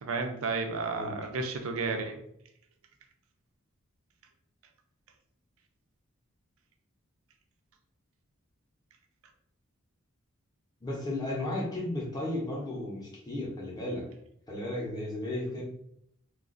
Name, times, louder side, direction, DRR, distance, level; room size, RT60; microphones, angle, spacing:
voice 1, 0.0-2.2, right 4 dB, 80° right, 5 dB, 0.5 m, -32 dB
voice 2, 10.8-14.0 14.5-15.6, left 1 dB, 20° left, -4 dB, 0.8 m, -34 dB
2.4 x 2.4 x 3.7 m, 0.72 s
head